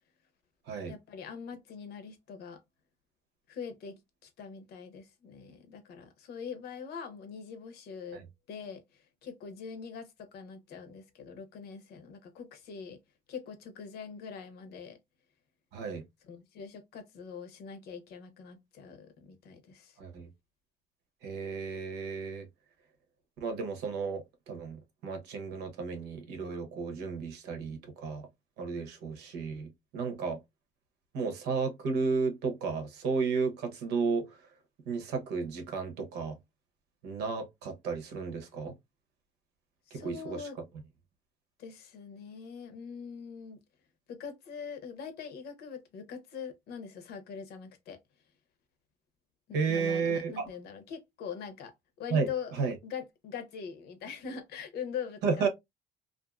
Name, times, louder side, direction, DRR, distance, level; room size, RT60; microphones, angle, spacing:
voice 1, 0.9-2.6 3.5-8.2 8.5-8.8 9.2-13.0 13.3-15.0 16.2-20.0 39.9-40.6 41.6-43.6 44.1-48.0 49.7-51.7 52.0-52.5 52.8-55.5, left 6 dB, 70° left, 0.8 m, -43 dB
voice 2, 15.7-16.0 20.0-20.3 21.2-22.5 23.4-28.2 28.6-30.4 31.1-34.3 34.9-36.3 37.0-38.7 39.9-40.5 49.5-50.3 52.1-52.3 52.6-52.7 55.2-55.5, right 5 dB, 85° right, 0.9 m, -33 dB
2.5 x 2.5 x 2.3 m
cardioid pair, 110°, 17 cm